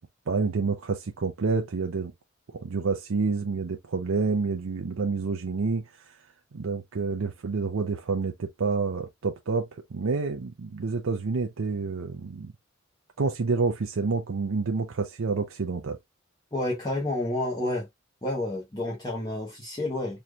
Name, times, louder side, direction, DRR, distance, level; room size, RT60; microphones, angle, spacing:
voice 1, 0.3-2.1 2.5-6.2 6.5-12.5 13.2-16.0, right 4 dB, 80° right, 0.5 m, -28 dB
voice 2, 16.5-17.9 18.2-20.2, left 1 dB, 20° left, 1.0 m, -30 dB
4.2 x 3.2 x 2.3 m
head